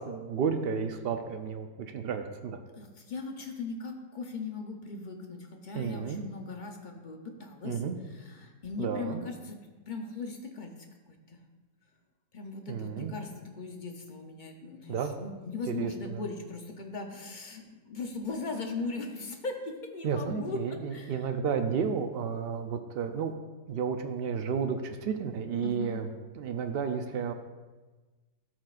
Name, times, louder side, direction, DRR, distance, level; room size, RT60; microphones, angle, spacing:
voice 1, 0.0-2.6 5.7-6.3 7.6-8.0 8.8-9.2 12.7-13.1 14.9-15.1 15.7-16.2 20.0-23.3 23.7-26.1 26.4-27.3, right 6 dB, 85° right, 6 dB, 0.5 m, -32 dB
voice 2, 2.7-9.6 9.9-10.7 11.1-11.4 12.3-20.6 20.9-21.3 25.6-26.0, left 3 dB, 45° left, 3 dB, 0.6 m, -39 dB
13.0 x 6.0 x 2.5 m, 1.3 s
omnidirectional pair, 1.6 m